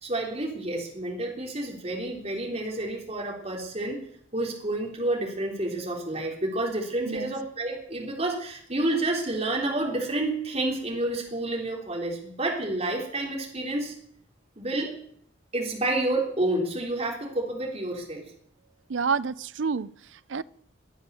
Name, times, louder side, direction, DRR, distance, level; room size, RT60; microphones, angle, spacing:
voice 1, 0.0-4.0 4.3-13.9 14.6-15.0 15.5-18.3, right 2 dB, 35° right, 0 dB, 3.5 m, -29 dB
voice 2, 18.9-20.4, right 5 dB, 75° right, 19 dB, 0.6 m, -29 dB
23.0 x 8.2 x 6.8 m, 0.65 s
head